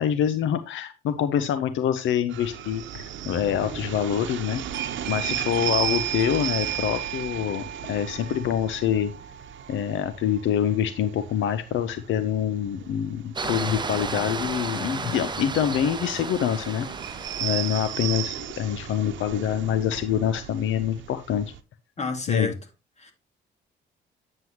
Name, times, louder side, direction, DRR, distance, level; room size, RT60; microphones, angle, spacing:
voice 1, 0.0-4.6 5.1-9.1 9.7-16.9 17.4-21.5 22.3-22.5, left 9 dB, 75° left, 0.7 m, -26 dB
sound 1, 2.3-21.6, right 10 dB, 70° right, 0.9 m, -36 dB
Doorbell, 4.7-11.2, right 9 dB, 55° right, 0.6 m, -36 dB
sound 2, 13.4-18.2, right 4 dB, 20° right, 0.8 m, -33 dB
voice 2, 22.0-22.5 23.0-23.1, left 4 dB, 35° left, 2.3 m, -29 dB
9.3 x 7.6 x 3.0 m
cardioid pair, 90°, 20 cm